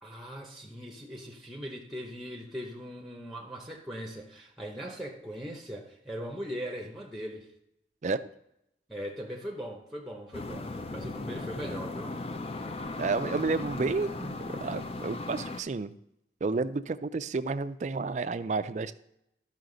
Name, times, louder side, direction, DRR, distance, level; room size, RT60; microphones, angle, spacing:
voice 1, 0.0-7.5 8.9-12.2, equal, ahead, 0.8 m, -40 dB
sound 1, 10.3-15.6, left 2 dB, 35° left, 0.5 m, -37 dB
voice 2, 13.0-15.9 16.4-18.9, right 3 dB, 40° right, 0.4 m, -31 dB
12.5 x 5.7 x 3.9 m
head